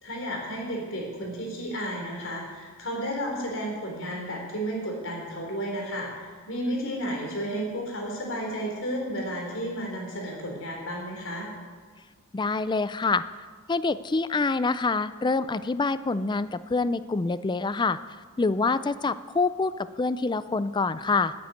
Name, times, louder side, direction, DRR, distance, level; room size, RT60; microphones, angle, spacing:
voice 1, 0.0-11.5, equal, 60° left, 0 dB, 3.8 m, -32 dB
voice 2, 12.3-13.2 13.7-18.0 18.4-19.7 20.0-21.3, left 3 dB, 20° left, 15 dB, 0.4 m, -26 dB
9.5 x 9.4 x 9.1 m, 1.6 s
head